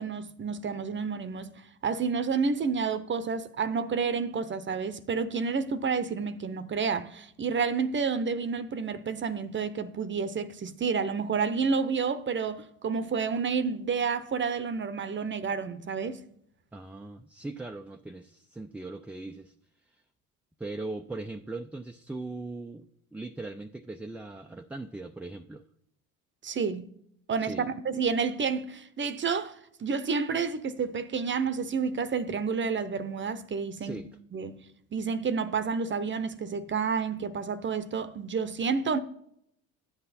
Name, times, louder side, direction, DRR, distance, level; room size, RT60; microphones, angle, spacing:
voice 1, 0.0-16.2 26.4-26.9 27.3-29.5 29.8-34.0 34.3-34.6 34.9-39.0, right 5 dB, 30° right, 0.7 m, -30 dB
voice 2, 16.7-19.5 20.6-25.6 27.4-27.7 33.8-34.1, right 2 dB, 5° right, 0.3 m, -39 dB
12.0 x 8.1 x 4.2 m
hypercardioid pair, 75°, 40 cm